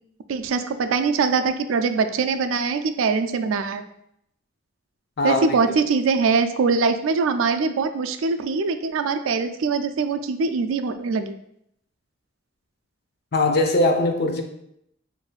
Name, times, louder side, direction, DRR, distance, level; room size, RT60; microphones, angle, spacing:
voice 1, 0.3-3.9 5.2-11.4, right 4 dB, 85° right, 0.4 m, -22 dB
voice 2, 13.3-14.4, left 2 dB, 55° left, 0.5 m, -20 dB
6.4 x 2.6 x 2.4 m
head